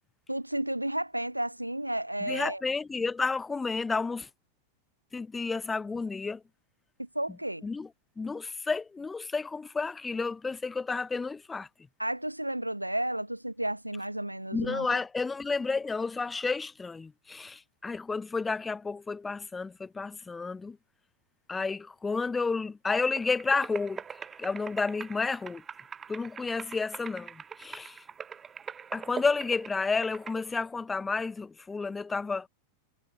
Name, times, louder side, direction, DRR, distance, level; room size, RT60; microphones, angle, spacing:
voice 1, 0.3-2.6 7.0-7.7 12.0-15.0, right 1 dB, 85° right, 0.4 m, -32 dB
voice 2, 2.3-4.3 5.1-6.4 7.6-7.9 8.2-11.7 14.5-20.8 21.5-24.0 24.4-25.6 26.1-28.0 28.9-32.5, left 4 dB, 10° left, 0.7 m, -31 dB
sound 1, 23.1-30.3, right 7 dB, 20° right, 2.2 m, -43 dB
figure-of-eight pair, 90°, 0 cm